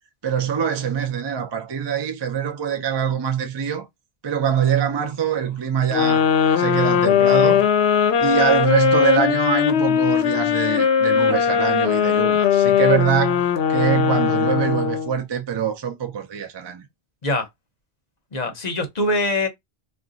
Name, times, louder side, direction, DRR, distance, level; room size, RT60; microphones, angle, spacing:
voice 1, 0.2-3.9 4.2-6.2 6.6-7.7 8.2-13.4 13.7-16.9, right 8 dB, 35° right, 0.4 m, -23 dB
sound 1, 5.9-15.1, left 8 dB, 80° left, 0.8 m, -19 dB
voice 2, 18.3-19.5, left 1 dB, 45° left, 0.8 m, -23 dB
2.5 x 2.3 x 3.8 m
omnidirectional pair, 1.1 m